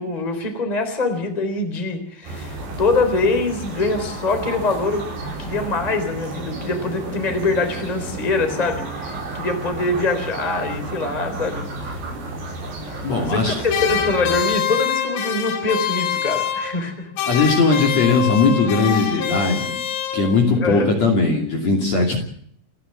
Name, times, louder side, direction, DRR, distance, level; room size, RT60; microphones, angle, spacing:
voice 1, 0.0-12.0 13.3-13.5 13.8-17.1 20.5-20.9, left 3 dB, 10° left, 7 dB, 3.1 m, -24 dB
sound 1, 2.2-14.4, right 2 dB, 85° right, 8.2 m, -32 dB
voice 2, 13.0-13.6 17.2-19.8 20.1-22.2, left 3 dB, 40° left, 1 dB, 3.4 m, -19 dB
sound 2, 13.7-16.9 17.2-20.6, left 9 dB, 75° left, 3.9 m, -25 dB
29.5 x 11.5 x 8.0 m, 0.64 s
omnidirectional pair, 5.1 m